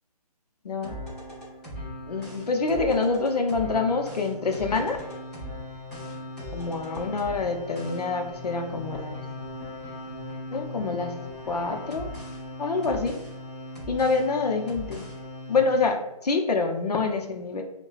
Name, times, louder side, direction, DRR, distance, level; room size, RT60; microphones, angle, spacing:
voice 1, 0.6-1.0 2.1-5.0 6.5-9.3 10.5-11.1 11.5-12.1 12.6-13.2 13.9-15.0 15.5-17.6, left 4 dB, 90° left, 4 dB, 0.7 m, -26 dB
sound 1, 0.8-15.6, left 1 dB, 5° left, 0.3 m, -38 dB
5.4 x 2.2 x 2.4 m, 0.89 s
hypercardioid pair, 150°, 20 cm